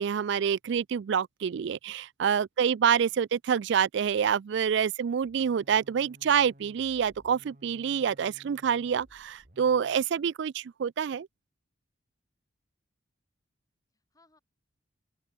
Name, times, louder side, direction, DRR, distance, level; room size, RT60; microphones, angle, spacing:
voice 1, 0.0-11.3, right 7 dB, 60° right, 0.3 m, -27 dB
voice 2, 2.8-3.4 13.9-14.4, left 1 dB, 15° left, 7.3 m, -67 dB
sound 1, 5.2-10.1, right 1 dB, 40° right, 2.4 m, -57 dB
open air
head